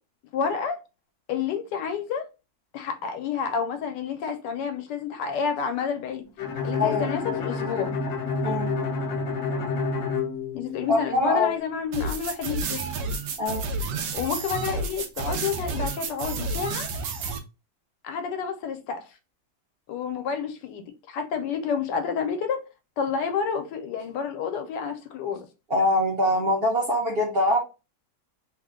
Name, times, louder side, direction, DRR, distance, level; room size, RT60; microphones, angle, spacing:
voice 1, 0.3-0.8 1.3-2.3 2.7-6.2 6.6-7.9 10.5-12.8 14.1-16.9 18.0-19.0 19.9-22.6 23.0-25.5, left 6 dB, 80° left, 1.2 m, -29 dB
Bowed string instrument, 6.4-11.2, left 4 dB, 65° left, 0.8 m, -29 dB
voice 2, 10.9-11.5 13.4-13.6 25.7-27.6, left 1 dB, 50° right, 0.7 m, -23 dB
sound 1, 11.9-17.4, right 3 dB, 80° right, 1.2 m, -30 dB
3.3 x 2.1 x 3.5 m
omnidirectional pair, 1.9 m